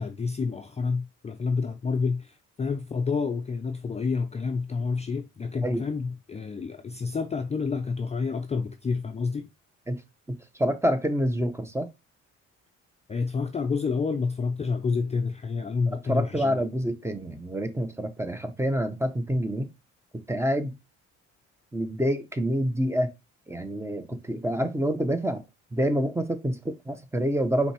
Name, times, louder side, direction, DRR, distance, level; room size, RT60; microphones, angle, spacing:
voice 1, 0.0-9.5 13.1-16.6, left 4 dB, 20° left, 0.4 m, -29 dB
voice 2, 10.3-11.9 15.9-19.7 20.1-20.7 21.7-23.1 23.5-25.4 25.7-27.7, equal, 10° right, 0.7 m, -27 dB
5.2 x 3.3 x 2.9 m
cardioid pair, 90°, 30 cm